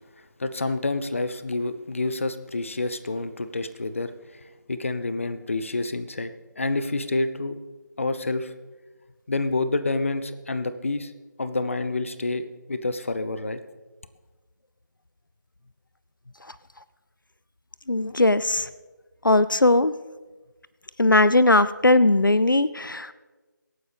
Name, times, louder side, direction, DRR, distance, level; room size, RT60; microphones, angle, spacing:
voice 1, 0.4-7.6 8.0-8.5 9.3-11.1 11.4-13.6, left 2 dB, 40° left, 12 dB, 0.8 m, -28 dB
voice 2, 17.9-18.7 19.2-19.9 21.0-23.1, left 2 dB, 85° left, 16 dB, 0.5 m, -19 dB
24.5 x 9.5 x 3.5 m, 1.2 s
figure-of-eight pair, 160°, 11 cm